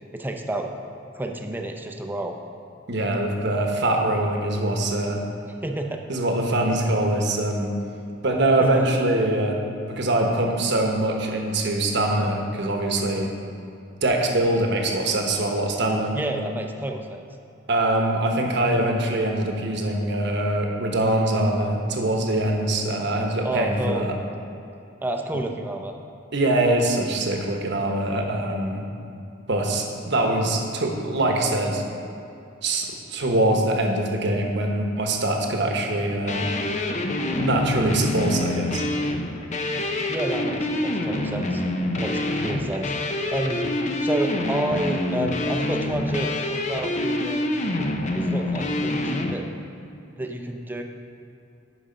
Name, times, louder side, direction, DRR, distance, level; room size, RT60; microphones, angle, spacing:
voice 1, 0.1-0.7 1.1-2.4 5.6-6.0 8.6-8.8 16.1-17.3 23.4-24.1 25.0-26.0 40.1-41.6 42.0-42.9 43.3-43.6 44.0-47.5 48.1-49.5 50.2-50.8, right 1 dB, 10° right, 3 dB, 0.6 m, -29 dB
voice 2, 2.9-5.2 6.1-7.7 8.2-9.6 9.9-13.3 14.0-16.2 17.7-24.1 26.3-28.8 29.5-31.8 32.6-36.4 37.4-38.8, right 1 dB, 65° right, 2 dB, 1.1 m, -23 dB
sound 1, 36.3-49.3, left 1 dB, 40° left, 0.6 m, -26 dB
11.0 x 5.0 x 5.1 m, 2.6 s
head